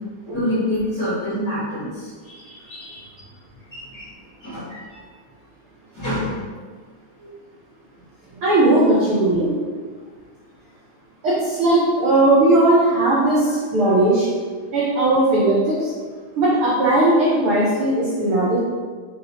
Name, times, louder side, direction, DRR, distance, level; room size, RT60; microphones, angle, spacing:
voice 1, 0.3-2.1 2.7-2.8 3.7-4.1 4.4-5.0 5.9-6.4, left 1 dB, 55° left, -14 dB, 1.0 m, -26 dB
voice 2, 2.4-3.0 8.4-9.5 11.2-14.3 14.7-15.9 16.4-18.6, right 2 dB, 75° right, -9 dB, 1.2 m, -18 dB
4.7 x 2.9 x 2.7 m, 1.6 s
omnidirectional pair, 3.6 m